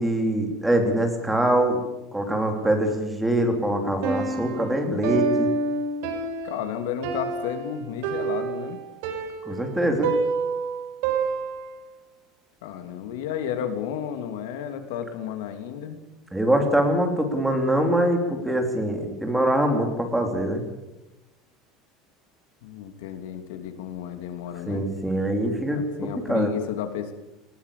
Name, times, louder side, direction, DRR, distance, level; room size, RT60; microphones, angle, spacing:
voice 1, 0.0-1.8 2.1-5.5 9.5-10.1 16.3-20.6 24.7-25.8 26.3-26.5, right 1 dB, 5° right, 4 dB, 3.1 m, -23 dB
Piano, 4.0-11.9, right 4 dB, 65° right, 4.4 m, -28 dB
voice 2, 6.4-8.8 12.6-16.0 22.6-24.9 25.7-27.1, left 9 dB, 85° left, 7 dB, 2.9 m, -32 dB
20.0 x 18.5 x 8.5 m, 0.99 s
cardioid pair, 170°, 0 cm